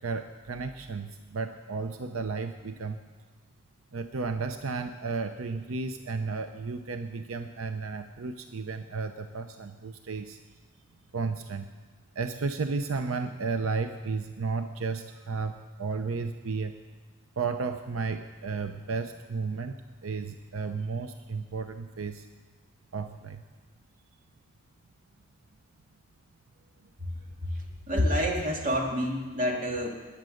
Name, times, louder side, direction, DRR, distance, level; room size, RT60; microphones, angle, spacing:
voice 1, 0.0-3.0 3.9-10.4 11.1-11.7 12.1-16.8 17.4-19.8 20.0-22.3 22.9-23.4, right 4 dB, 80° right, 8 dB, 0.7 m, -33 dB
voice 2, 27.9-29.9, equal, 40° right, 0 dB, 2.3 m, -27 dB
20.0 x 8.7 x 6.5 m, 1.4 s
head